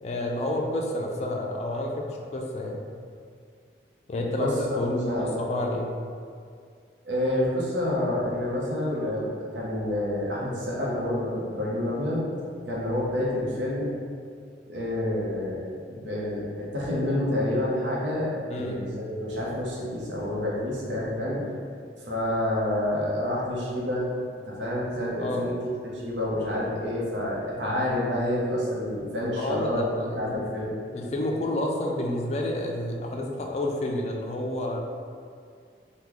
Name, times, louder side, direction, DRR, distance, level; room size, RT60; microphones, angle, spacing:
voice 1, 0.0-2.9 4.1-5.9 18.5-18.8 24.5-24.6 25.2-25.5 29.4-30.4 30.9-34.8, left 1 dB, 35° left, 0 dB, 0.3 m, -29 dB
voice 2, 4.1-4.8 5.1-5.3 7.0-12.3 12.6-14.0 14.7-21.4 22.1-24.1 24.5-25.6 25.8-30.7, left 1 dB, 85° right, -5 dB, 0.7 m, -28 dB
3.0 x 2.2 x 3.7 m, 2.2 s
head